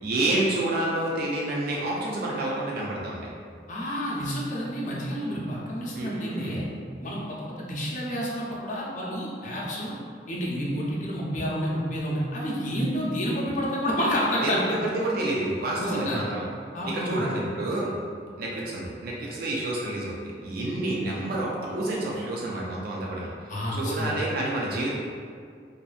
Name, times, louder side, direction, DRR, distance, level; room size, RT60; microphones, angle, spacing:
voice 1, 0.0-3.3 6.0-6.6 14.4-16.5 16.8-17.9 18.4-23.3 23.7-24.9, right 1 dB, 60° right, -4 dB, 0.3 m, -29 dB
voice 2, 3.7-6.6 7.0-9.9 10.3-14.8 15.8-16.2 16.7-17.2 20.7-20.8 23.5-24.1, equal, 45° left, -5 dB, 0.5 m, -29 dB
2.6 x 2.3 x 2.4 m, 2.2 s
head